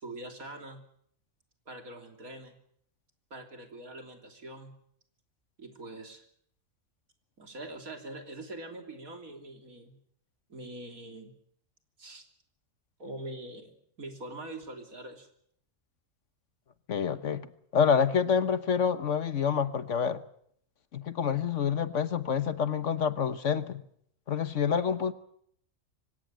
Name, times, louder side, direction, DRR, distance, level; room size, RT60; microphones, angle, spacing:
voice 1, 0.0-0.8 1.7-2.6 3.3-4.7 5.6-6.2 7.4-10.0 10.5-11.3 12.0-12.2 13.0-15.3, right 1 dB, 75° right, 4 dB, 3.7 m, -43 dB
voice 2, 16.9-17.5 17.7-20.2 20.9-23.8 24.3-25.1, left 7 dB, 60° left, 12 dB, 1.4 m, -27 dB
25.0 x 17.5 x 7.6 m, 0.68 s
omnidirectional pair, 1.5 m